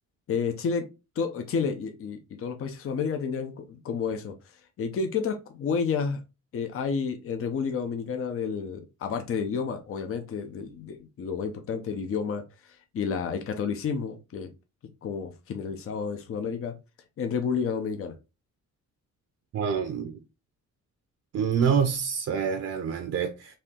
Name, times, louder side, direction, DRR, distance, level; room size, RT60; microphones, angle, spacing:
voice 1, 0.3-0.9 1.2-4.3 4.8-6.2 6.5-12.4 12.9-14.5 15.0-16.7 17.2-18.1, left 6 dB, 50° left, 0.7 m, -30 dB
voice 2, 19.5-20.2 21.3-23.6, right 7 dB, 55° right, 0.6 m, -26 dB
4.3 x 2.8 x 3.6 m
wide cardioid pair, 160°, 30 cm